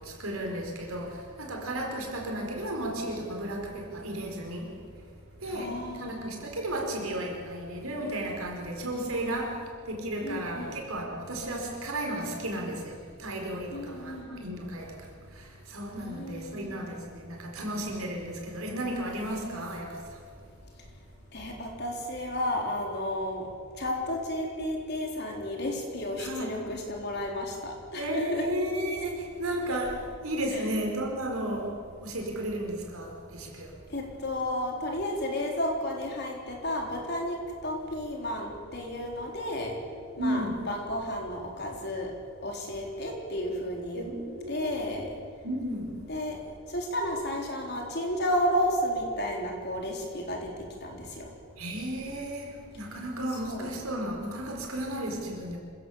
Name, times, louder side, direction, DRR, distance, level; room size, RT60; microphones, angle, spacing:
voice 1, 0.0-4.8 5.4-20.2 26.2-26.6 28.0-31.7 32.0-33.8 40.2-40.7 43.9-44.9 45.4-46.0 51.6-55.6, right 1 dB, 80° right, 1 dB, 4.8 m, -34 dB
voice 2, 5.5-6.4 10.2-10.8 13.7-14.5 16.0-16.9 21.3-23.5 23.8-28.4 30.5-30.7 33.9-39.7 40.2-42.1 42.4-44.0 44.5-45.1 46.1-46.4 46.7-50.5 50.8-51.3 53.3-53.7, left 1 dB, 50° left, 0 dB, 3.9 m, -32 dB
26.5 x 16.5 x 7.2 m, 2.1 s
head